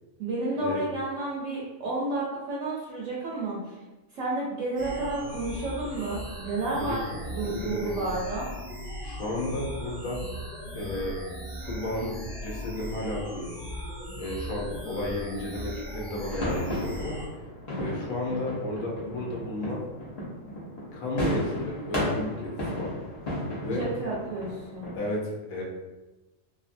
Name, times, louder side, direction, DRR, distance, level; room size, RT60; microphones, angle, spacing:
voice 1, 0.2-3.8 4.1-8.5 23.7-25.0, right 2 dB, 70° right, -5 dB, 0.9 m, -31 dB
sound 1, 4.8-17.3, equal, 10° right, 0.7 m, -38 dB
voice 2, 7.4-7.9 9.0-10.2 10.7-11.2 11.6-13.5 14.2-17.2 17.8-19.8 20.9-22.9 23.6-23.8 24.9-25.6, left 1 dB, 70° left, -3 dB, 1.1 m, -33 dB
sound 2, 16.3-25.0, equal, 35° left, 0.7 m, -34 dB
2.6 x 2.6 x 2.5 m, 1.1 s
omnidirectional pair, 1.5 m